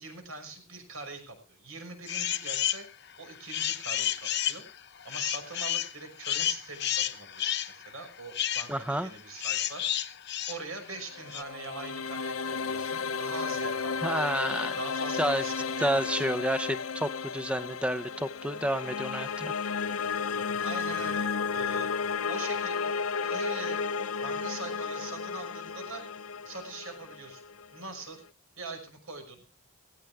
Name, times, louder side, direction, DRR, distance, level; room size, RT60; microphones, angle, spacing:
voice 1, 0.0-2.9 3.2-4.7 5.0-10.0 10.5-14.3 14.8-16.4 20.6-21.9 22.3-22.9 23.2-23.8 24.2-27.4 27.7-28.2 28.6-29.4, right 3 dB, 70° right, 5 dB, 6.0 m, -42 dB
sound 1, 2.1-2.8 3.3-11.4, left 11 dB, 50° left, 0.9 m, -31 dB
voice 2, 8.7-9.1 14.0-14.8 15.2-15.4 15.8-19.5, equal, 5° right, 13 dB, 0.6 m, -30 dB
sound 2, 11.0-28.1, left 5 dB, 75° left, 0.6 m, -33 dB
17.5 x 17.0 x 3.5 m, 0.33 s
head